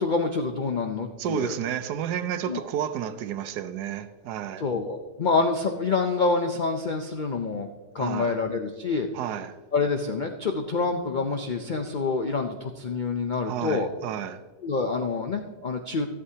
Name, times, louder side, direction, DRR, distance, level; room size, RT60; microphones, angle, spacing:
voice 1, 0.0-1.6 2.5-2.6 4.6-7.7 7.9-9.1 9.7-13.9 14.6-16.1, left 4 dB, 90° left, 0.4 m, -27 dB
voice 2, 1.2-4.6 8.0-8.4 9.1-9.6 13.4-14.4, right 10 dB, 80° right, 1.2 m, -31 dB
14.0 x 11.0 x 2.8 m
omnidirectional pair, 1.7 m